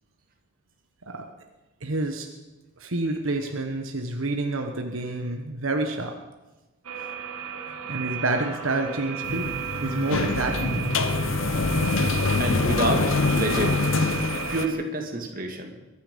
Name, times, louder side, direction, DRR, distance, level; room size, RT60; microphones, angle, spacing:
voice 1, 1.8-2.3 2.8-6.2 7.9-11.0, right 2 dB, 70° right, 4 dB, 1.3 m, -28 dB
sound 1, 6.8-14.7, right 8 dB, 90° right, 2.0 m, -34 dB
sound 2, 9.2-14.6, left 3 dB, 65° left, 0.8 m, -25 dB
voice 2, 12.4-13.8 14.5-15.8, right 2 dB, 40° right, 3 dB, 1.9 m, -28 dB
23.0 x 10.0 x 5.3 m, 1.1 s
head